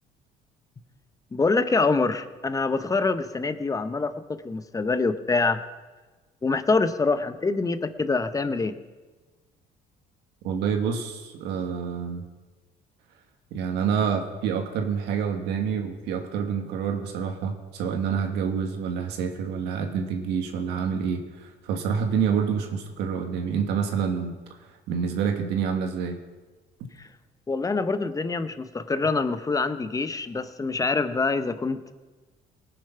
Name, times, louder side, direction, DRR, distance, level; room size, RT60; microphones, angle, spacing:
voice 1, 1.3-5.6 6.4-8.7 27.5-31.9, left 3 dB, 20° left, 11 dB, 0.7 m, -25 dB
voice 2, 10.4-12.2 13.5-24.3 24.9-26.2, right 7 dB, 85° right, 4 dB, 1.7 m, -27 dB
19.0 x 6.8 x 5.7 m, 1.3 s
cardioid pair, 110°, 17 cm